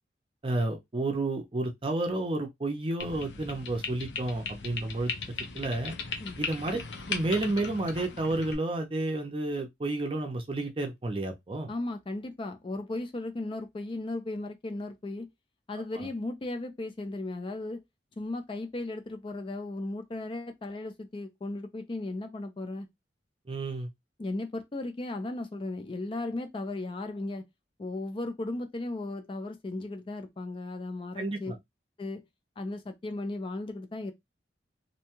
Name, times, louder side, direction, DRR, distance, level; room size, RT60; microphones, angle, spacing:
voice 1, 0.4-5.1 5.5-6.0 6.4-11.7 23.5-23.9 31.2-31.6, right 2 dB, 30° right, 0.6 m, -31 dB
sound 1, 3.0-8.6, left 4 dB, 75° left, 0.6 m, -38 dB
voice 2, 11.7-15.3 15.7-17.8 18.2-22.9 24.2-27.5 27.8-31.5 32.0-32.2 32.6-34.1, left 2 dB, 30° left, 0.4 m, -36 dB
2.7 x 2.2 x 2.9 m
head